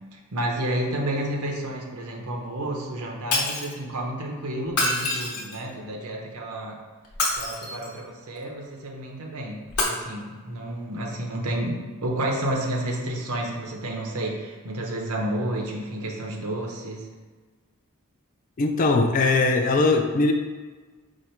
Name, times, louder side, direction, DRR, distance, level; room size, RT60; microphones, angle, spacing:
voice 1, 0.3-6.8 7.4-17.1, right 1 dB, 85° right, 0 dB, 0.8 m, -30 dB
Shatter, 3.3-3.7 4.7-5.7 7.0-8.0 9.7-9.8, left 2 dB, 85° left, 0.9 m, -26 dB
voice 2, 18.6-20.3, left 3 dB, 35° left, 5 dB, 0.3 m, -20 dB
4.9 x 2.2 x 4.3 m, 1.4 s
head